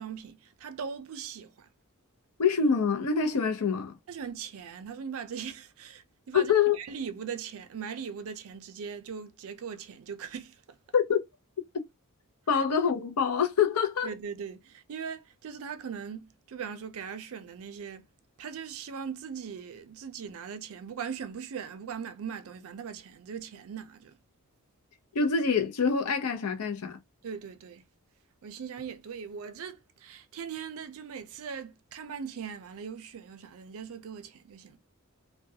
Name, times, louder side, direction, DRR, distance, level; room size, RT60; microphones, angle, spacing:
voice 1, 0.0-1.7 4.1-10.8 12.5-12.6 14.0-18.1 18.4-24.2 27.2-27.8 28.4-34.8, right 6 dB, 65° right, 0.4 m, -40 dB
voice 2, 2.4-3.9 6.3-6.8 10.9-11.2 12.5-14.1 25.1-27.0, left 6 dB, 85° left, 0.6 m, -25 dB
2.3 x 2.2 x 2.7 m
head